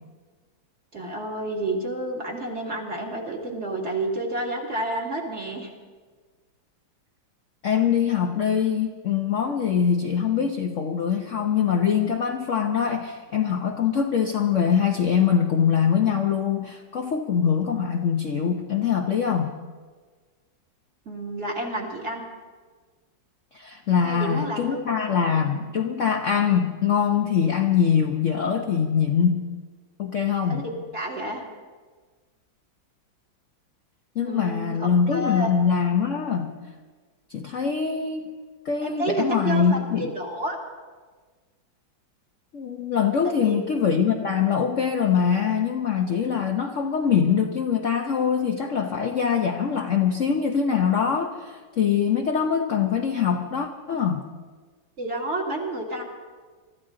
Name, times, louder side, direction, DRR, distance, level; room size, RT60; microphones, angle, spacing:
voice 1, 0.9-5.7 21.1-22.2 24.0-24.9 30.4-31.4 34.2-35.5 38.8-40.6 43.2-43.6 55.0-56.0, right 1 dB, 35° right, 0 dB, 2.2 m, -30 dB
voice 2, 7.6-19.5 23.5-29.5 30.0-30.7 34.1-36.6 37.3-38.3 38.6-40.2 42.5-54.2, left 7 dB, 55° left, 3 dB, 0.9 m, -23 dB
24.0 x 13.5 x 3.8 m, 1.4 s
omnidirectional pair, 2.1 m